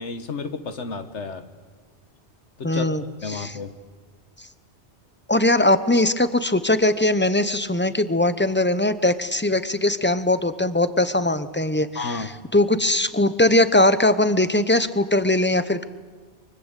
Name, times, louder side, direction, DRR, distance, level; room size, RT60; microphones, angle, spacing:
voice 1, 0.0-1.5 2.6-3.0 3.2-3.8 11.9-12.3, left 4 dB, 80° left, 9 dB, 1.7 m, -31 dB
voice 2, 2.6-3.0 3.3-3.6 5.3-15.8, left 1 dB, 10° left, 12 dB, 0.9 m, -20 dB
24.0 x 23.5 x 8.3 m, 1.4 s
omnidirectional pair, 1.2 m